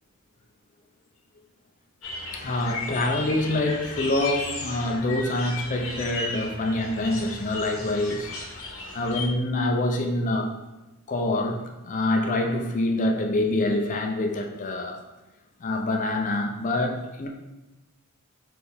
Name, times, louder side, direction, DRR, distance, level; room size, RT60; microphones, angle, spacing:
sound 1, 2.0-9.3, left 3 dB, 65° left, 0.9 m, -35 dB
voice 1, 2.3-8.3 8.9-10.5 11.1-15.0 15.6-17.3, left 1 dB, 35° left, 3 dB, 0.4 m, -26 dB
4.4 x 3.3 x 3.3 m, 1.0 s
head